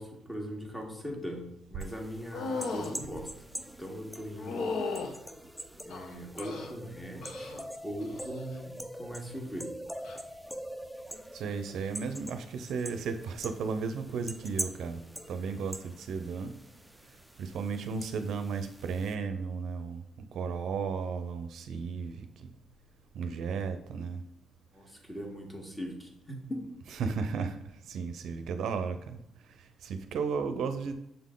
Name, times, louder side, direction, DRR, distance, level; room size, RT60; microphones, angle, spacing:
voice 1, 0.0-3.3 3.8-4.7 5.0-5.2 5.8-7.5 7.8-9.7 24.7-26.6, equal, 15° left, 0 dB, 1.6 m, -40 dB
sound 1, 1.8-19.1, equal, ahead, 0.5 m, -44 dB
sound 2, 2.3-3.0 4.4-5.1 5.9-6.7 7.2-7.6 8.0-8.4 10.0-10.2, left 4 dB, 75° left, 0.8 m, -36 dB
voice 2, 11.3-15.0 15.3-16.6 17.4-20.0 20.3-22.5 23.1-24.2 27.0-27.6 27.9-29.2 29.8-30.9, right 5 dB, 75° right, 8 dB, 0.5 m, -34 dB
6.8 x 3.7 x 3.8 m, 0.81 s
cardioid pair, 90°, 0 cm